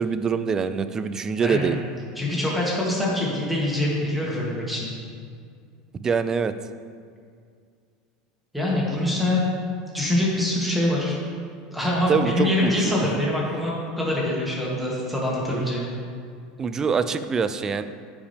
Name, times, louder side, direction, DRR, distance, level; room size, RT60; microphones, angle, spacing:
voice 1, 0.0-1.8 5.9-6.5 12.1-12.9 15.5-15.7 16.6-17.8, right 6 dB, 20° right, 11 dB, 0.3 m, -24 dB
voice 2, 2.2-4.9 8.5-9.4 9.9-11.2 11.7-15.9, left 1 dB, ahead, -5 dB, 2.0 m, -24 dB
15.0 x 5.0 x 3.5 m, 2.2 s
supercardioid pair, 155°, 3 cm